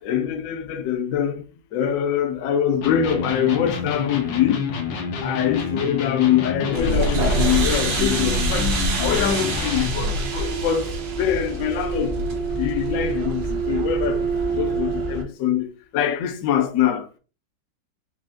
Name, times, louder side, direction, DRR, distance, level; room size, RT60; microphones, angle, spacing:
voice 1, 0.0-1.4 1.7-4.6 5.2-8.7 9.0-10.8 11.2-12.1 12.6-14.2 14.6-15.7 15.9-17.0, left 9 dB, 60° left, 0.9 m, -23 dB
Electric guitar, 2.8-10.1, left 5 dB, 80° left, 1.6 m, -28 dB
sound 1, 6.7-15.2, right 3 dB, 75° right, 1.6 m, -25 dB
4.9 x 2.5 x 3.7 m
omnidirectional pair, 2.0 m